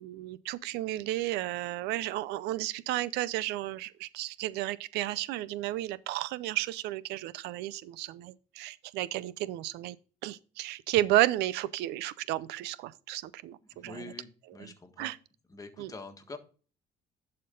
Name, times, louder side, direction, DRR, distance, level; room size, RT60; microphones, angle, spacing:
voice 1, 0.0-10.0 10.2-14.1 14.6-15.2 15.8-15.9, right 15 dB, 90° right, 0.5 m, -32 dB
voice 2, 13.6-15.1 15.5-16.4, left 3 dB, 20° left, 1.5 m, -46 dB
11.0 x 4.3 x 3.8 m
cardioid pair, 110°, 17 cm